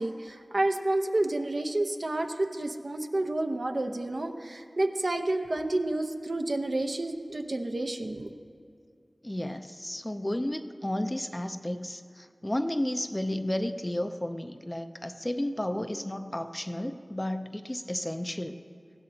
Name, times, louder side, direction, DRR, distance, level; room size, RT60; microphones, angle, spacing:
voice 1, 0.0-8.3, right 2 dB, 65° right, 4 dB, 0.8 m, -30 dB
voice 2, 9.2-18.6, left 1 dB, 20° left, 8 dB, 0.5 m, -32 dB
19.5 x 16.0 x 2.8 m, 2.4 s
wide cardioid pair, 55°, 0 cm